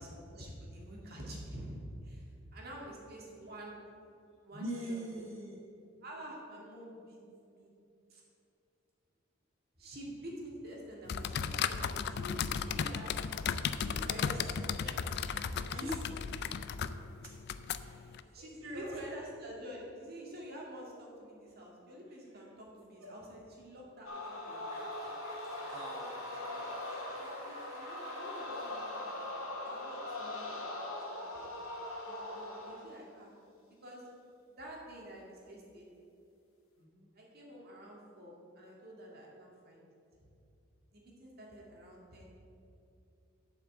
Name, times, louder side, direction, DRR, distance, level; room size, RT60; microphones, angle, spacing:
voice 1, 0.0-1.8 2.0-3.8 4.4-5.2 6.0-7.2 7.4-7.7 8.1-8.2 9.8-12.4 12.7-13.5 13.8-15.0 17.7-24.8 27.1-30.7 31.1-31.5 32.1-33.3 33.8-34.1 34.6-35.8 37.1-39.9 40.9-42.3, equal, 50° right, -2 dB, 2.1 m, -48 dB
voice 2, 4.5-5.6 15.7-16.3 17.8-18.1 18.3-19.0 23.0-23.1 25.5-26.1 36.8-37.1, right 1 dB, 75° right, -6 dB, 2.5 m, -42 dB
sound 1, 11.1-18.2, left 7 dB, 55° left, 0.4 m, -35 dB
sound 2, 24.0-32.9, left 1 dB, 80° left, 1.7 m, -41 dB
Applause, 24.2-30.5, equal, 20° right, 2.4 m, -54 dB
7.7 x 5.8 x 7.9 m, 2.6 s
head